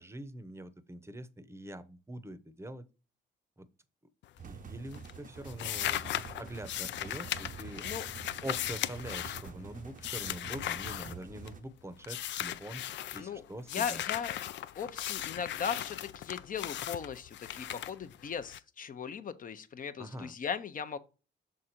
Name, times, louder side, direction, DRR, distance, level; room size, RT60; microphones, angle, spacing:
voice 1, 0.0-2.9 3.6-3.7 4.4-7.9 8.4-14.0 20.0-20.3, right 1 dB, 15° right, 0.8 m, -44 dB
sound 1, 4.2-4.7 4.9-11.7 12.0-13.2 13.7-18.6, left 12 dB, 70° left, 0.4 m, -38 dB
sound 2, 4.4-11.6, right 6 dB, 40° right, 0.6 m, -47 dB
voice 2, 13.7-14.4 14.8-21.0, left 7 dB, 45° left, 0.7 m, -38 dB
6.5 x 3.7 x 4.3 m
cardioid pair, 90°, 20 cm